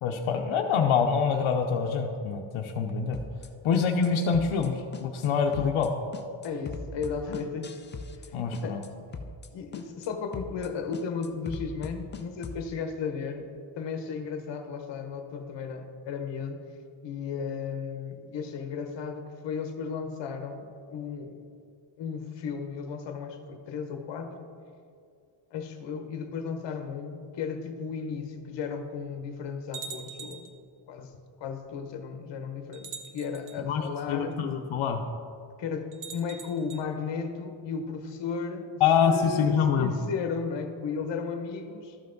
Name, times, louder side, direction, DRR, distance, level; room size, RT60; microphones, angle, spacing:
voice 1, 0.0-3.2 3.6-5.9 8.3-8.8 33.7-33.8 34.1-35.0 38.8-39.9, left 6 dB, 85° left, 3 dB, 0.7 m, -25 dB
sound 1, 3.1-3.5 3.7-4.1 4.3-4.7 4.9-5.3 5.5-5.9 6.1-8.3 8.5-8.9 9.1-9.5 9.7-10.1 10.3-10.7 10.9-12.6, left 4 dB, 25° left, 0.3 m, -39 dB
voice 2, 6.4-7.7 8.2-8.4 8.6-8.8 9.5-13.5 13.8-16.6 17.0-21.4 22.0-24.5 25.5-30.5 30.9-31.1 31.4-34.4 35.6-42.0, left 5 dB, 60° left, 6 dB, 0.9 m, -35 dB
sound 2, 28.1-28.2 28.9-29.0 29.7-30.6 31.7-31.8 32.7-33.6 35.9-36.8, right 5 dB, 40° right, 0.7 m, -42 dB
12.5 x 5.7 x 3.9 m, 2.4 s
wide cardioid pair, 155°, 48 cm